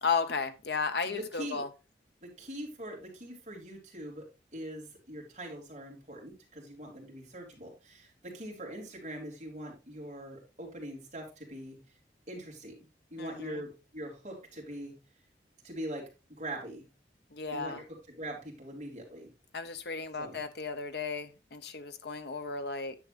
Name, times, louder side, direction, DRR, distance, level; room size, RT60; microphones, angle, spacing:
voice 1, 0.0-1.7 13.2-13.6 17.3-17.8 19.5-23.0, left 5 dB, 70° left, 8 dB, 0.9 m, -34 dB
voice 2, 1.0-1.6 2.2-11.8 12.3-12.8 13.1-15.0 15.6-16.9 17.5-19.3 20.2-20.4, right 1 dB, 40° right, -2 dB, 3.2 m, -42 dB
9.8 x 7.1 x 2.6 m, 0.29 s
head